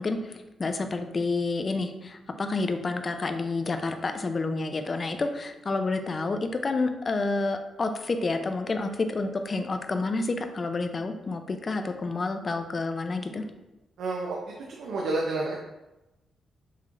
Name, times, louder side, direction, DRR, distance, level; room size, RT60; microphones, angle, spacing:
voice 1, 0.0-13.4, left 3 dB, 35° left, 7 dB, 0.4 m, -29 dB
voice 2, 14.0-14.4 14.7-15.6, right 2 dB, 85° right, -1 dB, 0.5 m, -29 dB
5.5 x 3.1 x 2.5 m, 0.98 s
cardioid pair, 110°, 0 cm